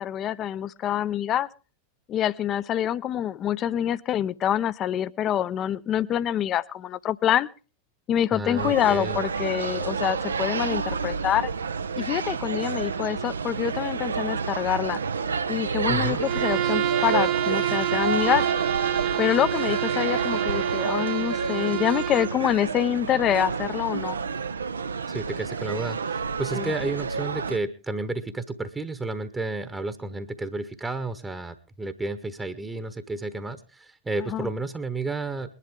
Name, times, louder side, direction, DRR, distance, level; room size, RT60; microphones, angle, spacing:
voice 1, 0.0-1.5 2.1-7.5 8.1-11.5 12.0-15.0 15.5-18.5 19.2-24.2 26.5-26.7 34.3-34.5, left 10 dB, 30° left, 18 dB, 0.6 m, -26 dB
voice 2, 8.3-9.2 15.9-16.2 25.1-35.5, right 2 dB, 10° right, 11 dB, 1.0 m, -32 dB
sound 1, 8.6-27.6, right 5 dB, 70° right, 0.6 m, -29 dB
Bowed string instrument, 16.2-22.4, right 13 dB, 45° right, 1.1 m, -28 dB
21.5 x 11.0 x 3.6 m, 0.35 s
figure-of-eight pair, 90°, 0 cm